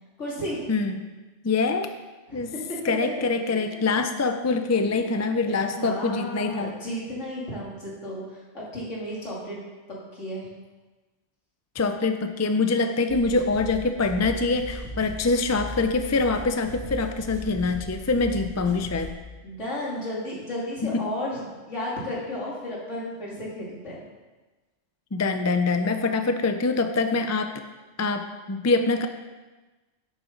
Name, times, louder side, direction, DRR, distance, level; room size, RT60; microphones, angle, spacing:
voice 1, 0.2-0.7 2.3-2.8 3.2-3.9 4.9-5.1 5.4-9.6 10.1-10.5 19.4-24.0, left 1 dB, 75° left, -6 dB, 3.2 m, -34 dB
voice 2, 0.7-1.0 1.4-1.9 2.3-2.5 2.8-6.7 11.7-19.1 20.8-21.0 25.1-27.6 28.0-29.1, left 3 dB, 25° left, 7 dB, 0.4 m, -24 dB
sound 1, 13.1-19.1, equal, 5° left, 2.3 m, -38 dB
11.5 x 8.5 x 3.9 m, 1.2 s
omnidirectional pair, 1.3 m